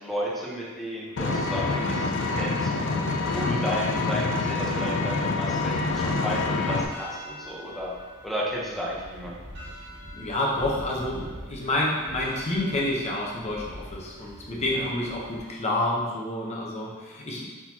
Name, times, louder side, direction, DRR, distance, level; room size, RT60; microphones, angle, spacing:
voice 1, 0.0-3.1 3.3-7.9 8.2-9.3 14.7-14.9, equal, ahead, -6 dB, 0.8 m, -33 dB
Vehicle, 1.2-6.9, left 3 dB, 60° left, 0.4 m, -26 dB
sound 1, 5.5-15.4, equal, 55° right, 0.9 m, -43 dB
voice 2, 10.1-11.2 11.5-17.5, left 1 dB, 30° left, -3 dB, 0.8 m, -28 dB
4.4 x 3.9 x 2.7 m, 1.4 s
head